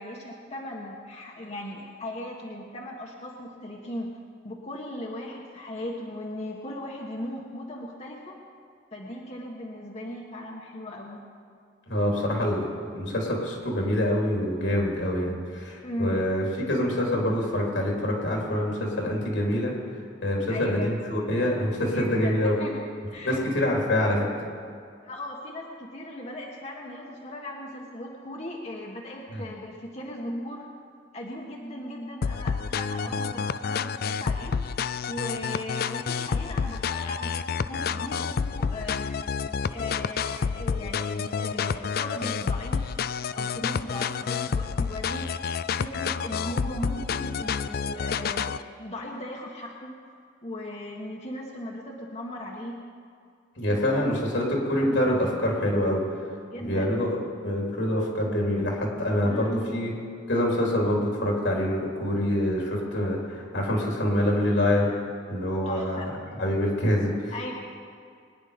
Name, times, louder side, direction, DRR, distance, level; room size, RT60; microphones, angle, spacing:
voice 1, 0.0-4.1 4.4-8.4 8.9-11.2 15.8-16.3 20.5-20.9 21.9-22.8 23.1-23.4 25.0-30.7 31.1-34.5 35.1-39.1 39.7-42.9 43.3-45.3 45.8-50.0 50.4-52.8 53.7-54.2 54.7-55.0 56.4-57.0 59.2-59.6 65.6-66.1 67.3-67.5, left 1 dB, 35° left, -2 dB, 1.4 m, -37 dB
voice 2, 11.9-19.7 20.2-22.6 23.2-24.3 29.3-29.4 53.6-56.0 56.6-57.2 57.4-59.9 60.3-65.0 65.3-66.1 66.4-67.5, left 1 dB, 80° left, -2 dB, 3.9 m, -25 dB
sound 1, 32.2-48.6, left 6 dB, 55° left, 0.4 m, -29 dB
22.5 x 10.0 x 5.2 m, 2.3 s
head